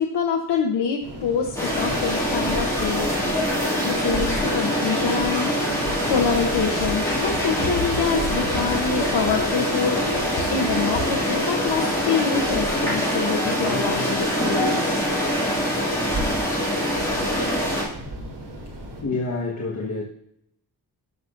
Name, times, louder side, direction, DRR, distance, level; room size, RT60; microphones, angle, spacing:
voice 1, 0.0-3.1 3.8-5.5 6.1-10.0 10.5-14.8, left 6 dB, 85° left, 1 dB, 0.9 m, -25 dB
sound 1, 1.0-19.0, right 1 dB, 80° right, 2.7 m, -36 dB
sound 2, 1.6-17.8, equal, 10° left, 2.4 m, -24 dB
voice 2, 18.4-20.0, left 3 dB, 45° left, -3 dB, 1.4 m, -29 dB
12.5 x 5.9 x 2.6 m, 0.75 s
wide cardioid pair, 170°, 40 cm